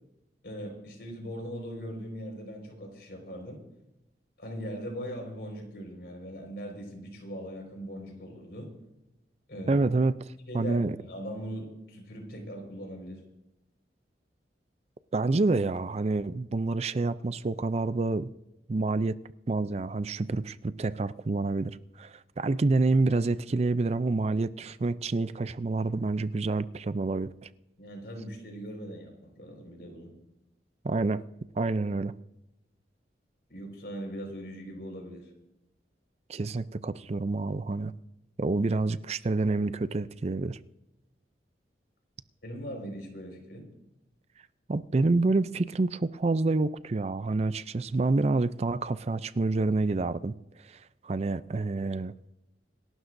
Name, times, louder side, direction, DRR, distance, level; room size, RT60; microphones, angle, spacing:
voice 1, 0.4-3.6 4.4-8.7 9.5-9.8 10.5-13.2 27.8-30.1 33.5-35.3 42.4-43.7, equal, 65° left, 4.9 m, -40 dB
voice 2, 9.7-10.9 15.1-18.3 18.7-19.2 19.5-27.5 30.8-31.2 31.6-32.1 36.3-37.9 38.4-40.6 44.7-52.1, right 3 dB, 35° right, 0.4 m, -28 dB
27.5 x 12.5 x 2.6 m
head